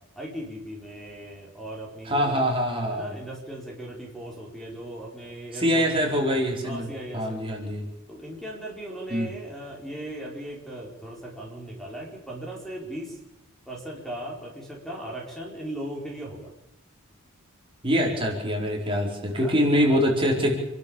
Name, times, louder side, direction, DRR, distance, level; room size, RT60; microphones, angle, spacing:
voice 1, 0.2-2.4 2.9-7.4 8.1-13.2 13.7-16.5 19.3-20.0, right 1 dB, ahead, -2 dB, 4.6 m, -38 dB
voice 2, 2.0-3.1 5.5-6.9 7.1-7.9 9.1-9.3 17.8-20.5, equal, 25° right, -1 dB, 4.7 m, -24 dB
28.5 x 12.5 x 7.2 m, 0.95 s
head